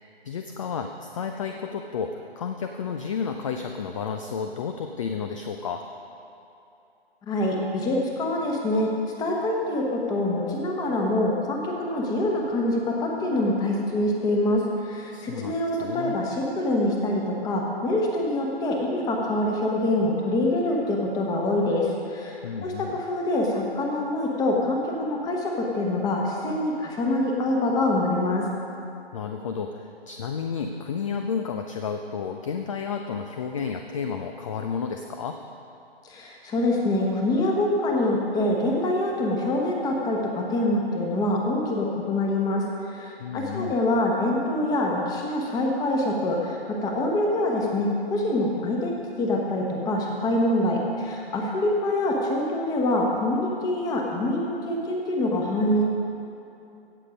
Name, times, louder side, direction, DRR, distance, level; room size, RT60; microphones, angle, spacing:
voice 1, 0.2-5.8 15.1-16.2 22.4-23.0 29.1-35.4 43.2-43.8, left 6 dB, 30° left, 5 dB, 0.5 m, -31 dB
voice 2, 7.2-8.9 9.2-28.4 36.0-55.8, left 1 dB, 10° left, 0 dB, 1.2 m, -25 dB
16.5 x 6.6 x 5.1 m, 2.8 s
figure-of-eight pair, 140°, 32 cm